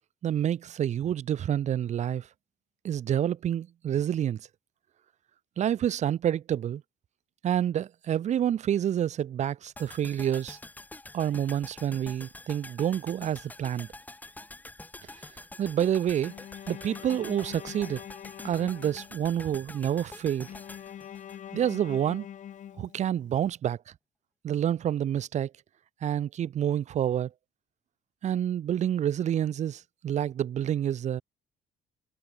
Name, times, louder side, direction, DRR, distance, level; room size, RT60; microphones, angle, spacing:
voice 1, 0.2-2.3 2.8-4.4 5.6-6.8 7.4-10.6 11.1-13.9 15.6-16.3 16.7-18.0 18.4-20.5 21.5-22.2 22.8-23.8 24.4-25.5 26.0-27.3 28.2-31.2, right 10 dB, 40° right, 1.2 m, -28 dB
sound 1, 9.8-21.9 22.2-22.3, left 2 dB, 10° left, 7.4 m, -46 dB
Bowed string instrument, 16.3-19.5 20.5-23.4, left 10 dB, 45° left, 4.1 m, -44 dB
cardioid pair, 170°, 19 cm